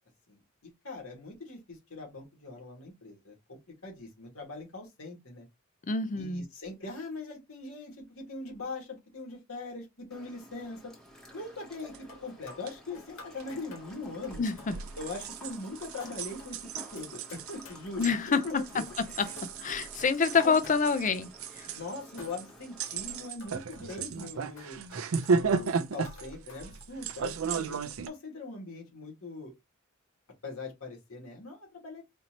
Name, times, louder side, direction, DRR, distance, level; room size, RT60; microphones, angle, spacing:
voice 1, 0.6-5.5 6.1-10.9 11.3-14.4 15.0-18.8 20.4-20.6 21.7-24.8 25.3-29.5 30.4-32.0, left 3 dB, 90° left, 2.0 m, -41 dB
voice 2, 5.9-6.5 14.4-14.7 18.0-19.3 19.6-21.3 21.6-21.7, left 5 dB, 40° left, 0.5 m, -27 dB
sound 1, 10.1-23.3, equal, 5° left, 1.0 m, -53 dB
sound 2, 11.8-21.6 22.2-26.8, left 3 dB, 70° left, 1.6 m, -54 dB
sound 3, 11.9-12.0 12.5-12.7 13.4-13.5 14.3-28.1, right 5 dB, 80° right, 0.5 m, -34 dB
4.3 x 2.8 x 2.9 m
head